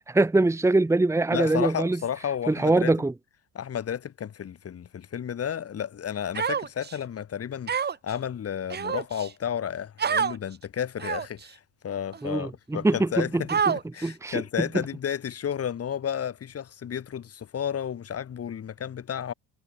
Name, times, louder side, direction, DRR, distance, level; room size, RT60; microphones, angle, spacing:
voice 1, 0.0-2.0 2.5-3.1 12.2-13.7 14.0-14.7, right 2 dB, 5° right, 1.4 m, -23 dB
voice 2, 1.3-2.9 3.5-13.5 13.9-19.3, left 9 dB, 35° left, 5.8 m, -32 dB
Human voice, 6.3-7.0 7.7-8.1 8.7-9.3 10.0-10.4 11.0-11.4 12.1-12.2 13.5-14.1, right 7 dB, 25° right, 1.5 m, -27 dB
cardioid pair, 170°, 40 cm